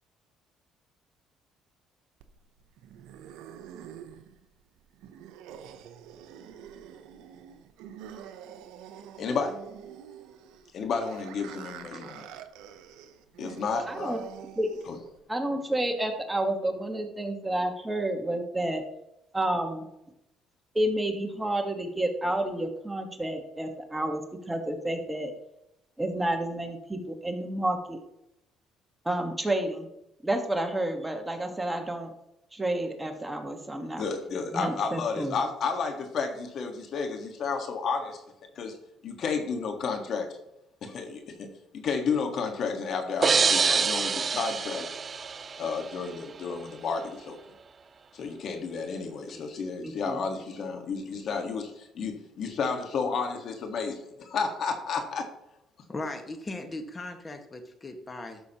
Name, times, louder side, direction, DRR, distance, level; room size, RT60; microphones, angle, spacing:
sound 1, 2.2-15.2, right 9 dB, 85° right, 0.7 m, -46 dB
voice 1, 9.2-9.6 10.7-12.3 13.4-14.2 14.9-15.0 34.0-38.2 38.5-38.8 39.0-40.3 40.8-41.5 41.7-45.0 45.6-47.4 48.1-55.3, left 5 dB, 55° left, 5 dB, 1.6 m, -31 dB
voice 2, 13.9-14.2 14.6-14.7 15.3-18.8 19.3-19.8 20.7-24.2 24.5-25.3 26.0-28.0 29.0-29.9 30.2-32.1 32.5-34.0 34.5-35.4 49.8-50.2, right 1 dB, 10° right, 4 dB, 1.4 m, -30 dB
sound 2, 43.2-46.0, right 5 dB, 35° right, 0.4 m, -26 dB
voice 3, 55.9-58.4, left 2 dB, 25° left, 6 dB, 1.5 m, -38 dB
12.5 x 6.3 x 3.0 m, 0.83 s
supercardioid pair, 85°, 0 cm